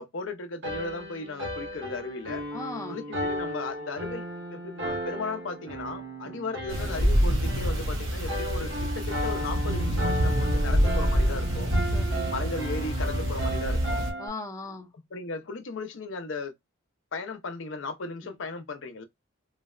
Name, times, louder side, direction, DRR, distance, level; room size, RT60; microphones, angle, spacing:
voice 1, 0.0-2.5 2.9-4.2 4.5-11.7 12.3-14.1 15.1-16.5 17.1-19.0, left 3 dB, 65° left, 0.6 m, -36 dB
sound 1, 0.6-14.3, equal, 60° right, 1.1 m, -35 dB
voice 2, 2.5-3.0 6.2-6.4 11.9-12.3 14.2-14.9 18.2-18.3, left 2 dB, 15° left, 0.6 m, -38 dB
sound 2, 6.7-14.1, equal, 85° right, 1.1 m, -26 dB
3.9 x 2.1 x 2.3 m
head